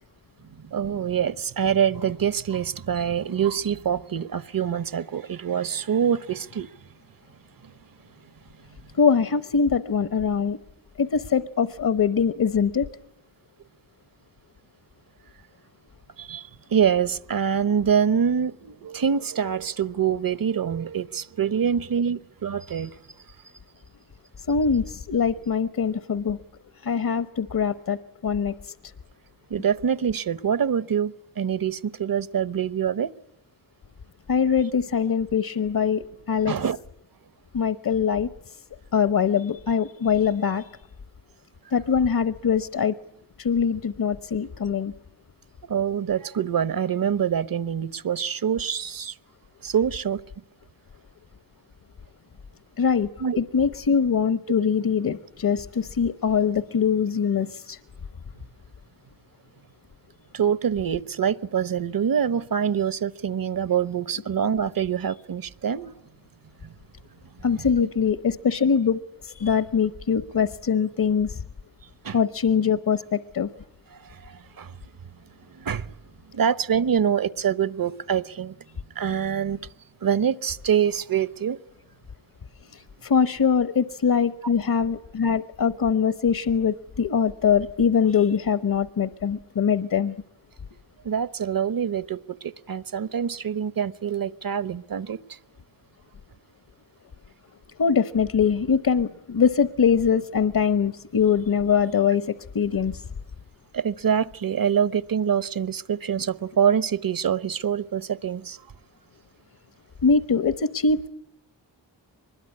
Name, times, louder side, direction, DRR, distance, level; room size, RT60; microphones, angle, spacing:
voice 1, 0.6-6.7 16.2-22.9 29.5-33.1 36.4-36.8 45.7-49.1 49.6-50.2 53.2-53.4 60.3-65.9 66.6-66.7 67.4-67.9 72.0-72.2 74.0-74.8 75.5-75.9 76.3-78.5 78.9-79.6 80.0-81.6 91.0-95.4 103.7-108.6, right 8 dB, 50° right, 1.0 m, -25 dB
voice 2, 9.0-10.6 11.0-12.9 24.5-26.4 26.8-28.7 34.3-36.5 37.5-38.5 38.9-40.7 41.7-43.0 43.4-44.9 52.8-53.1 53.4-57.8 67.4-71.4 72.1-73.5 82.7-90.2 97.8-103.0 110.0-111.1, left 6 dB, 50° left, 1.0 m, -23 dB
24.0 x 21.5 x 9.7 m
cardioid pair, 50°, 44 cm